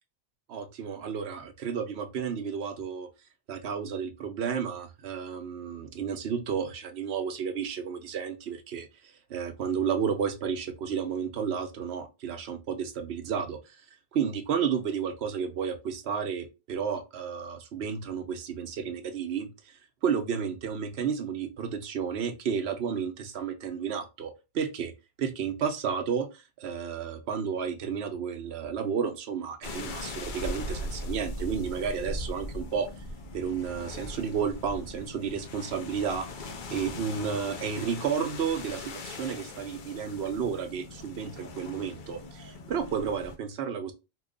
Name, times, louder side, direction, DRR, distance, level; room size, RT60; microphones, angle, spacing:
voice 1, 0.5-3.1 3.5-8.9 9.3-13.6 14.1-19.5 20.0-24.9 25.2-32.9 33.3-43.9, right 7 dB, 85° right, 6 dB, 0.9 m, -32 dB
sound 1, 29.6-43.4, left 1 dB, 55° left, 0.7 m, -39 dB
2.8 x 2.3 x 3.7 m, 0.27 s
omnidirectional pair, 1.0 m